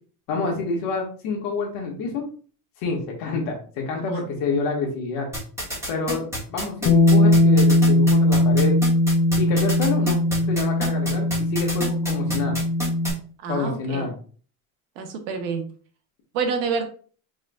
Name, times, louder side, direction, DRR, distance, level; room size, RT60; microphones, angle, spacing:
voice 1, 0.3-2.2 2.8-5.3 5.9-8.8 9.4-10.2 10.5-12.6 13.5-14.1, left 4 dB, 60° left, 0 dB, 1.6 m, -27 dB
sound 1, 5.3-13.1, equal, 5° right, 1.7 m, -29 dB
Bass guitar, 6.9-13.1, left 1 dB, 25° left, 0.4 m, -19 dB
voice 2, 13.4-14.1 15.0-15.7 16.3-16.9, right 5 dB, 80° right, 6 dB, 1.1 m, -27 dB
4.9 x 3.6 x 2.3 m, 0.41 s
cardioid pair, 160°, 39 cm